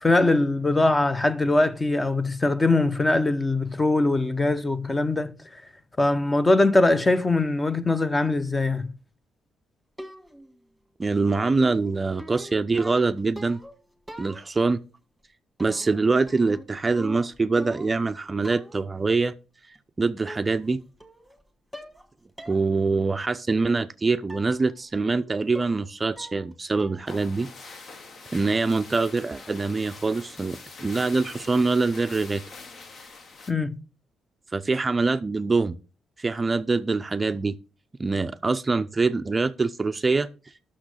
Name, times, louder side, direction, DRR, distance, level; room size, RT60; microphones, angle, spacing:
voice 1, 0.0-5.3 6.0-8.9 33.5-33.8, left 2 dB, 20° left, 0.7 m, -22 dB
sound 1, 10.0-10.5 11.6-13.8 14.1-14.7 15.6-16.0 16.3-18.1 18.4-18.8 19.8-19.9 20.3-20.7 21.0-21.4 21.7-22.1 22.4-22.6 23.0-23.1 24.3-24.5 24.9-25.2 25.5-25.9 26.2-26.5 26.8-27.1, equal, ahead, 1.6 m, -42 dB
voice 2, 11.0-13.6 14.2-14.8 15.6-19.3 19.7-20.8 22.5-27.5 28.3-32.4 34.5-35.8 36.2-37.6 38.0-40.5, right 3 dB, 25° right, 0.4 m, -24 dB
sound 2, 27.1-33.5, left 4 dB, 55° left, 1.2 m, -44 dB
6.2 x 6.1 x 6.4 m
cardioid pair, 90°, 0 cm